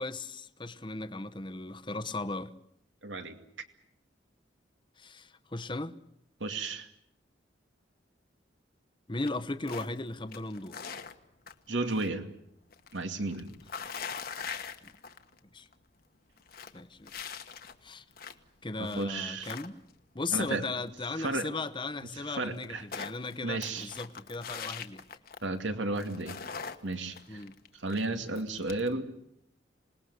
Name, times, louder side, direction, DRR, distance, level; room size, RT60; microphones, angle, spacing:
voice 1, 0.0-2.5 5.0-5.9 9.1-10.8 14.8-14.9 15.5-15.7 16.7-17.3 17.8-18.0 18.6-19.8 20.1-25.0 27.3-27.6, left 3 dB, 25° left, 0.9 m, -37 dB
voice 2, 3.0-3.4 6.4-6.9 11.7-12.3 12.9-13.5 18.8-19.5 20.3-20.6 21.2-21.5 22.1-22.8 23.4-23.9 25.4-26.4 26.8-27.4 27.8-29.1, right 2 dB, 85° right, 2.5 m, -33 dB
sound 1, 9.3-10.0 10.3-12.1 12.4-15.4 15.7-15.8 16.2-18.5 18.8-20.1 21.7-21.8 21.9-22.0 22.3-25.7 26.0-28.9, left 6 dB, 50° left, 1.3 m, -42 dB
27.0 x 20.0 x 8.1 m
head